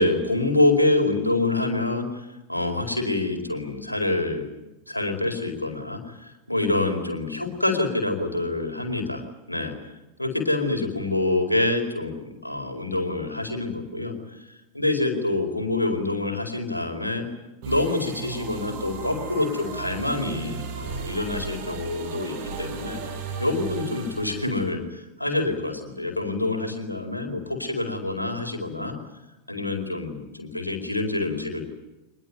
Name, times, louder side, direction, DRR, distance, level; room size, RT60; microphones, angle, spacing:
voice 1, 0.0-4.4 4.9-9.2 9.5-9.7 10.2-14.1 14.7-17.3 17.6-23.0 23.4-28.9 29.5-31.6, left 2 dB, 85° left, 4 dB, 4.7 m, -26 dB
sound 1, 17.6-24.7, right 6 dB, 50° right, 5.4 m, -35 dB
25.0 x 21.0 x 9.2 m, 1.0 s
figure-of-eight pair, 90°, 0 cm